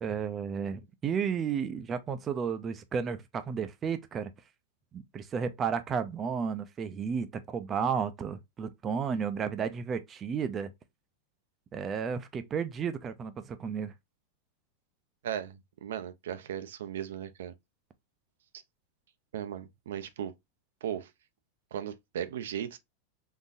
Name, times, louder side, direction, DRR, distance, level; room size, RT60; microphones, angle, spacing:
voice 1, 0.0-4.3 4.9-10.7 11.7-13.9, right 6 dB, 20° right, 0.4 m, -33 dB
voice 2, 15.2-17.5 19.3-20.3 20.8-21.1 21.7-22.8, right 9 dB, 85° right, 0.5 m, -37 dB
3.8 x 2.6 x 2.4 m
supercardioid pair, 145°, 0 cm